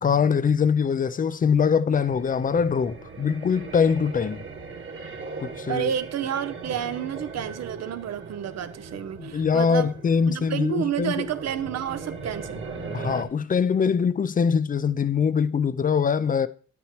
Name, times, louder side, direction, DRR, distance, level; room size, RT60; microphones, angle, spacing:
voice 1, 0.0-4.4 5.4-5.9 9.2-11.3 12.9-16.5, left 6 dB, 30° left, 0.5 m, -23 dB
sound 1, 1.9-13.2, right 4 dB, 40° right, 1.8 m, -39 dB
voice 2, 5.7-9.9 10.3-12.6, right 9 dB, 60° right, 0.9 m, -30 dB
10.0 x 8.5 x 3.1 m
cardioid pair, 90°, 30 cm